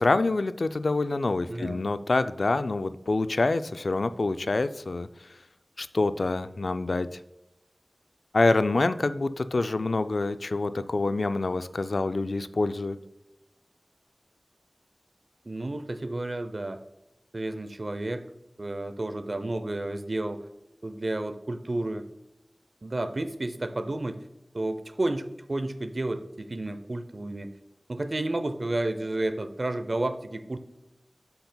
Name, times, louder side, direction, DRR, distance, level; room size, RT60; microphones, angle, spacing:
voice 1, 0.0-5.1 5.8-7.2 8.3-13.0, left 3 dB, 85° left, 12 dB, 0.3 m, -26 dB
voice 2, 1.5-1.8 15.4-16.8 17.3-18.2 18.6-20.5 20.8-22.0 22.8-24.2 24.5-27.5 27.9-30.6, right 2 dB, 55° right, 10 dB, 0.6 m, -31 dB
7.8 x 6.8 x 2.2 m, 0.94 s
wide cardioid pair, 60°, 0 cm